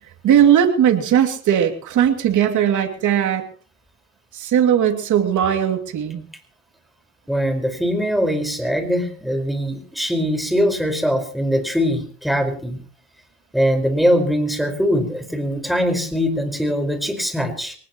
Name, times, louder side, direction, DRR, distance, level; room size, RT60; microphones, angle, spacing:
voice 1, 0.2-3.4 4.3-6.2, right 9 dB, 75° right, 4 dB, 2.7 m, -18 dB
voice 2, 7.3-12.8 13.5-17.8, equal, ahead, 5 dB, 5.1 m, -21 dB
23.5 x 20.0 x 3.1 m, 0.44 s
cardioid pair, 90°, 30 cm